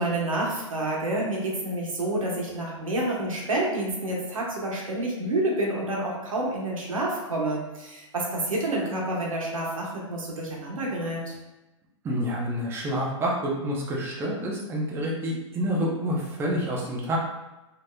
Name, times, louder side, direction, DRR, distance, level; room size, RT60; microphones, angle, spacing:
voice 1, 0.0-11.3, right 1 dB, 90° right, -2 dB, 1.0 m, -28 dB
voice 2, 12.0-17.2, equal, 15° right, -3 dB, 0.6 m, -28 dB
3.1 x 2.7 x 2.2 m, 1.0 s
hypercardioid pair, 135°, 17 cm